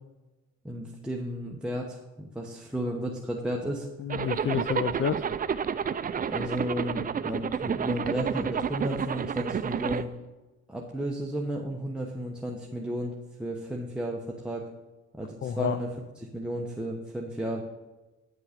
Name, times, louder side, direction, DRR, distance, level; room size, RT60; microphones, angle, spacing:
voice 1, 0.6-3.9 6.1-10.1 10.7-14.7 15.1-15.9 16.2-17.6, equal, 5° right, -2 dB, 1.0 m, -33 dB
voice 2, 4.0-5.2 15.4-15.8, left 8 dB, 40° left, 11 dB, 0.5 m, -29 dB
Zipper (clothing), 4.1-10.0, right 7 dB, 30° right, 0.4 m, -30 dB
9.5 x 6.1 x 5.1 m, 1.1 s
cardioid pair, 90°, 30 cm